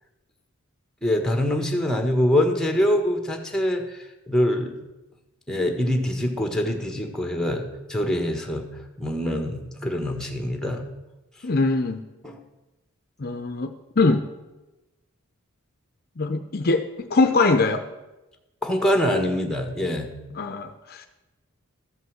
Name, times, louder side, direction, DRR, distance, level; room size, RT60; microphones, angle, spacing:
voice 1, 1.0-4.0 4.3-4.8 5.5-8.7 9.0-10.8 12.2-12.4 18.6-20.1, left 1 dB, 5° left, 4 dB, 1.4 m, -24 dB
voice 2, 11.4-12.0 13.2-14.2 16.2-17.8 20.3-21.1, left 3 dB, 45° left, 7 dB, 0.7 m, -22 dB
13.5 x 5.4 x 7.8 m, 1.0 s
head